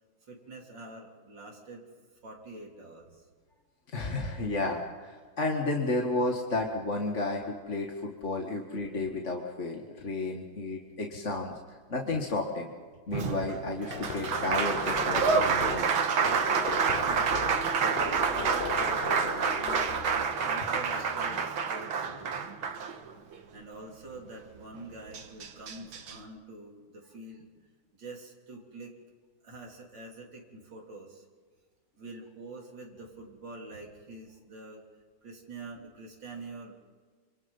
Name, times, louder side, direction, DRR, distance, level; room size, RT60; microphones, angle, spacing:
voice 1, 0.2-1.8 2.2-3.2 17.0-19.9 20.4-22.5 23.5-27.5 27.9-28.9 29.4-31.2 32.0-34.8 35.2-36.7, right 2 dB, 65° right, -1 dB, 4.2 m, -45 dB
voice 2, 3.9-11.5 11.9-12.7 13.1-15.9, left 2 dB, 40° left, 1 dB, 2.1 m, -32 dB
Applause, 13.1-23.4 24.8-24.9 25.1-26.2, right 6 dB, 85° right, 2.2 m, -28 dB
sound 1, 13.2-23.6, right 1 dB, 10° right, 4.9 m, -49 dB
sound 2, 13.9-20.5, left 7 dB, 80° left, 0.5 m, -38 dB
27.5 x 26.5 x 5.6 m, 1.5 s
omnidirectional pair, 2.1 m